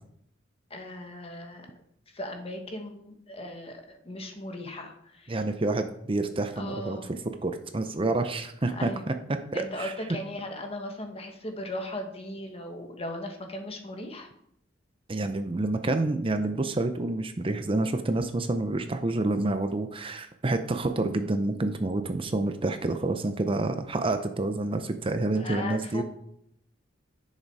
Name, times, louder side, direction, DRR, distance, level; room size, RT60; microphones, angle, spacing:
voice 1, 0.7-1.7 2.1-5.4 6.5-7.1 8.6-9.0 9.5-14.3 25.3-26.0, left 1 dB, 30° left, 4 dB, 1.5 m, -37 dB
voice 2, 5.3-7.0 7.4-9.1 9.5-9.9 15.1-26.0, right 2 dB, 30° right, 8 dB, 0.6 m, -28 dB
10.5 x 6.7 x 4.8 m, 0.71 s
head